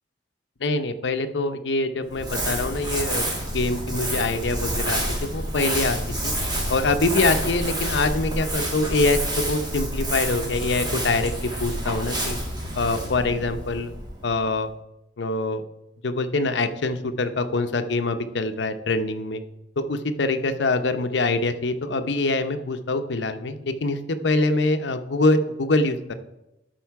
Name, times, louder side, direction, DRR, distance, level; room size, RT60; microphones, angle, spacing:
voice 1, 0.6-3.3 3.5-6.0 6.2-6.3 6.7-12.4 12.8-13.9 14.2-14.7 15.2-15.6 16.0-19.4 19.8-26.1, left 2 dB, 70° left, 9 dB, 0.7 m, -24 dB
Crumpling crinkling, 2.1-14.5, right 1 dB, 25° right, 2.0 m, -28 dB
12.0 x 4.5 x 4.6 m, 0.90 s
head